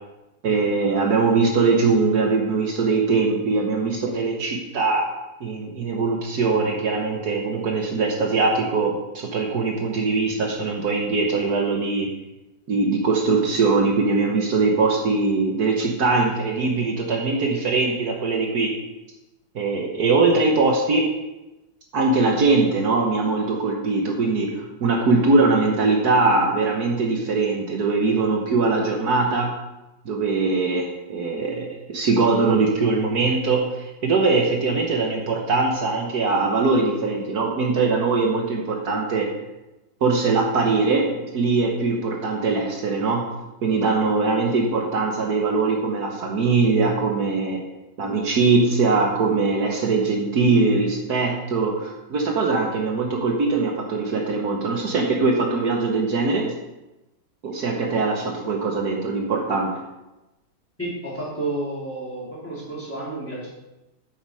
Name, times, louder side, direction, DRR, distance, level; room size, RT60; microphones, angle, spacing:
voice 1, 0.4-5.1 5.4-12.1 12.7-18.7 19.5-21.1 21.9-29.5 30.0-39.3 40.0-43.2 43.6-47.6 48.0-56.5 57.4-59.7, right 3 dB, 60° right, 1 dB, 1.5 m, -21 dB
voice 2, 60.8-63.5, right 2 dB, 5° left, -7 dB, 3.5 m, -31 dB
8.4 x 7.2 x 4.8 m, 1.0 s
omnidirectional pair, 2.0 m